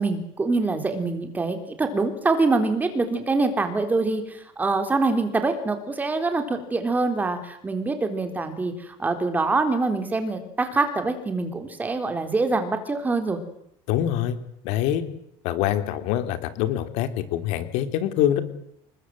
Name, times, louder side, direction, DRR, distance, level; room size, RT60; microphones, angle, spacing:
voice 1, 0.0-13.4, right 3 dB, 15° right, 7 dB, 3.8 m, -25 dB
voice 2, 13.9-14.4 14.6-15.0 15.4-18.4, left 11 dB, 65° left, 9 dB, 3.5 m, -24 dB
29.5 x 21.5 x 7.9 m, 0.73 s
cardioid pair, 160°, 13 cm